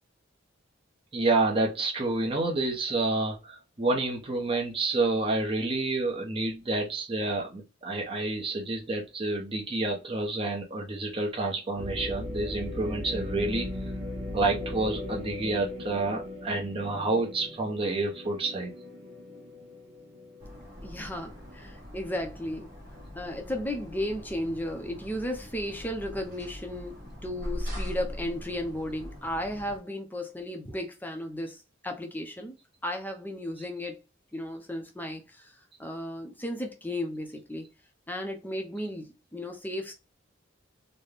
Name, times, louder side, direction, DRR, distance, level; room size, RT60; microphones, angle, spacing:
voice 1, 1.1-13.7 14.3-18.7, right 2 dB, 30° right, 0.9 m, -29 dB
sound 1, 11.8-21.7 22.2-22.3 22.9-23.3, left 1 dB, 75° right, 1.9 m, -38 dB
sound 2, 20.4-29.8, equal, 50° right, 1.6 m, -41 dB
voice 2, 20.8-22.8 23.1-32.6 32.8-34.0 34.3-37.7 38.1-39.9, left 1 dB, 10° left, 0.7 m, -35 dB
4.1 x 2.2 x 3.4 m
head